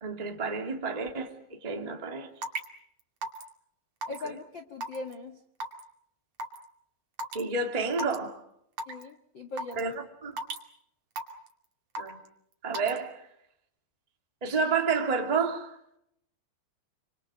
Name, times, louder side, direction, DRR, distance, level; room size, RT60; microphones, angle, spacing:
voice 1, 0.0-2.3 4.2-4.4 7.3-8.4 9.8-10.3 12.0-12.2 12.6-13.2 14.4-15.8, right 4 dB, 10° right, 2.1 m, -30 dB
Raindrop / Water tap faucet / Drip, 2.4-2.7 3.2-3.5 4.0-4.3 4.8-5.1 5.6-5.8 6.4-6.6 7.2-7.4 7.9-8.2 8.8-9.0 9.6-9.8 10.4-10.6 11.2-11.5 12.0-12.3 12.7-13.0, right 2 dB, 40° right, 3.0 m, -34 dB
voice 2, 4.1-5.4 8.9-9.9, left 3 dB, 80° left, 1.0 m, -40 dB
29.0 x 26.5 x 5.2 m
omnidirectional pair, 5.1 m